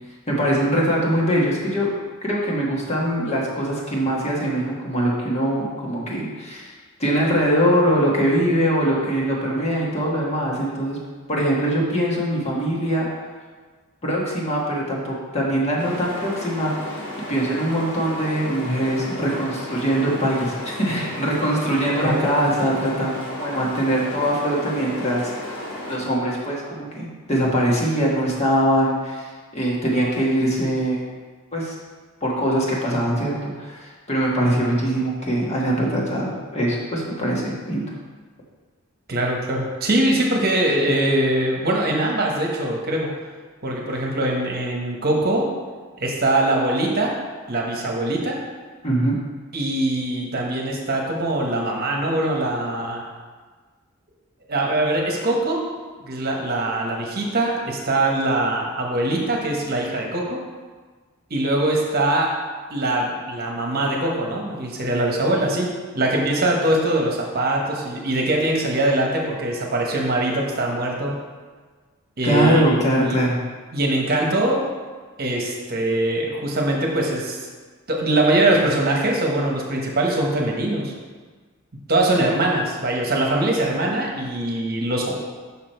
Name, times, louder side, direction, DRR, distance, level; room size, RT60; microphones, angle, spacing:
voice 1, 0.3-6.7 7.0-11.0 11.3-13.1 14.0-16.9 17.3-25.3 25.9-31.1 31.5-31.7 32.2-37.8 48.8-49.2 72.2-73.4, equal, 30° left, -4 dB, 1.4 m, -22 dB
sound 1, 15.8-26.0, left 1 dB, 80° left, 1.8 m, -34 dB
voice 2, 39.1-43.1 43.6-45.5 46.0-47.1 47.5-48.4 49.5-53.0 54.5-55.6 56.0-60.4 61.3-62.3 62.7-65.7 65.9-71.2 72.2-73.2 73.7-74.6 75.2-77.5 77.9-80.9 81.9-85.1, right 1 dB, 45° right, 0 dB, 1.1 m, -22 dB
6.1 x 5.8 x 4.5 m, 1.4 s
head